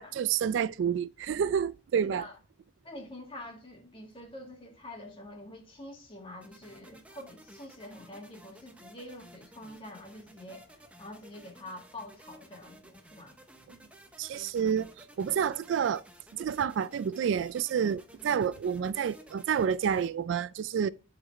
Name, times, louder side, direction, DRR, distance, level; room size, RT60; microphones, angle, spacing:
voice 1, 0.0-2.2 13.7-13.8 14.2-14.9 15.2-16.0 16.4-20.9, right 7 dB, 70° right, 0.3 m, -29 dB
voice 2, 2.0-2.4 2.8-13.4 18.2-18.3, left 1 dB, 30° left, 1.9 m, -46 dB
sound 1, 6.4-20.1, equal, 5° right, 0.8 m, -55 dB
11.0 x 4.0 x 3.1 m
head